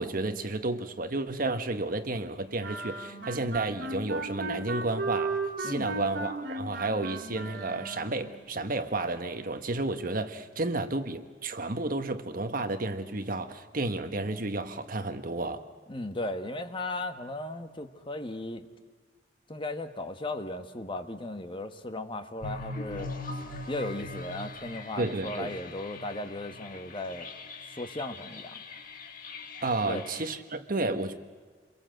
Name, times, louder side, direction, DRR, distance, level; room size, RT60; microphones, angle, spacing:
voice 1, 0.0-15.6 25.0-25.5 29.6-31.1, right 2 dB, 50° right, 7 dB, 1.4 m, -31 dB
sound 1, 2.6-8.3, right 3 dB, 75° right, 3.3 m, -35 dB
voice 2, 15.9-18.6 19.5-23.1 23.7-27.3 27.6-28.6 29.8-30.0, left 2 dB, 30° left, 7 dB, 1.3 m, -36 dB
sound 2, 22.4-30.3, left 2 dB, 50° left, 1.9 m, -41 dB
28.0 x 22.0 x 7.9 m, 1.5 s
head